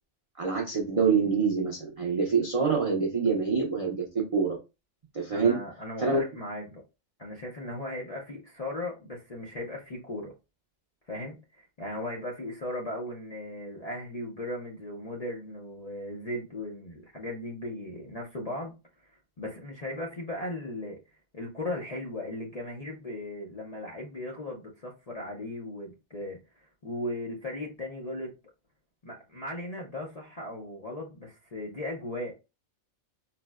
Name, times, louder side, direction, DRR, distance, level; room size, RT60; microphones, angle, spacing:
voice 1, 0.4-4.6 5.1-5.6 6.0-6.2, right 5 dB, 55° right, 0.3 m, -26 dB
voice 2, 5.3-6.8 7.2-10.3 11.1-18.8 19.0-19.1 19.4-21.0 21.3-28.3 29.0-32.3, left 1 dB, 50° left, 0.4 m, -37 dB
4.2 x 2.0 x 2.2 m
omnidirectional pair, 1.4 m